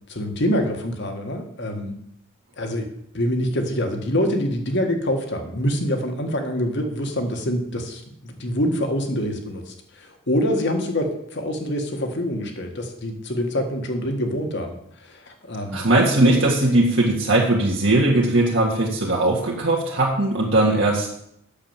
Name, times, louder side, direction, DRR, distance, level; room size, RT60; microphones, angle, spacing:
voice 1, 0.1-2.0 2.6-2.9 3.1-15.8 16.2-16.3, equal, 55° left, 4 dB, 1.7 m, -25 dB
voice 2, 15.7-21.2, right 2 dB, 60° right, -3 dB, 1.8 m, -19 dB
8.7 x 6.9 x 7.4 m, 0.73 s
head